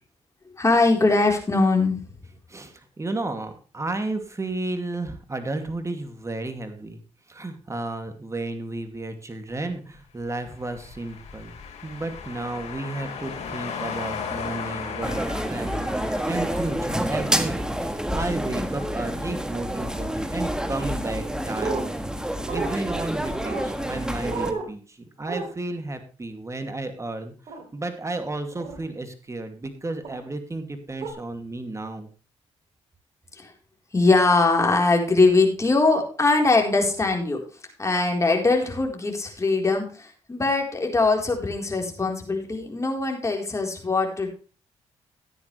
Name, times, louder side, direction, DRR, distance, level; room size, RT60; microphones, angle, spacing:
voice 1, 0.6-2.0 33.4-33.5 33.9-37.4 37.8-44.3, left 3 dB, 25° left, 2 dB, 4.1 m, -21 dB
voice 2, 2.5-7.0 7.3-11.5 11.8-15.2 15.5-27.3 27.7-32.1, right 2 dB, 25° right, 7 dB, 2.5 m, -33 dB
sound 1, 10.6-17.3, left 6 dB, 70° left, 3.3 m, -36 dB
sound 2, 15.0-24.5, equal, 5° right, 1.5 m, -28 dB
sound 3, 21.5-21.8 22.5-22.7 23.4-23.7 24.2-24.7 25.2-25.5 27.5-27.6 28.5-28.8 30.0-30.2 31.0-31.1, right 4 dB, 55° right, 3.1 m, -31 dB
13.5 x 9.8 x 3.3 m, 0.36 s
supercardioid pair, 65°, 12 cm